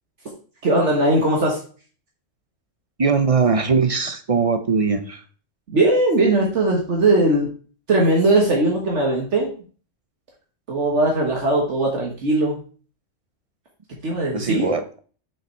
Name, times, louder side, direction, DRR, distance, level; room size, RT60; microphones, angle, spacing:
voice 1, 0.6-1.6 5.7-7.5 7.9-9.6 10.7-12.6 14.0-14.7, right 2 dB, 70° right, -1 dB, 1.6 m, -19 dB
voice 2, 3.0-5.2 14.3-14.8, right 5 dB, 40° right, 9 dB, 0.5 m, -20 dB
5.7 x 5.7 x 4.4 m, 0.40 s
omnidirectional pair, 1.3 m